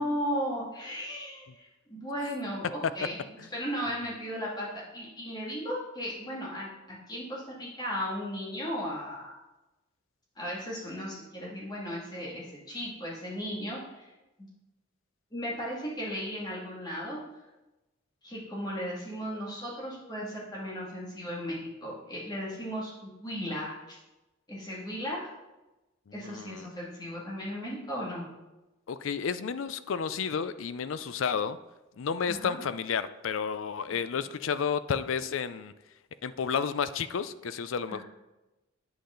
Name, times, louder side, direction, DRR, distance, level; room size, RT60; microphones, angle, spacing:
voice 1, 0.0-3.2 3.5-9.4 10.4-14.1 14.4-14.5 15.3-17.2 18.2-24.0 24.5-25.3 26.1-28.3 32.3-32.6 37.9-38.0, equal, 20° left, -5 dB, 2.2 m, -36 dB
voice 2, 26.2-26.7 28.9-31.6 32.0-35.7 36.2-38.0, left 6 dB, 70° left, 14 dB, 0.4 m, -31 dB
8.4 x 7.8 x 3.8 m, 1.0 s
head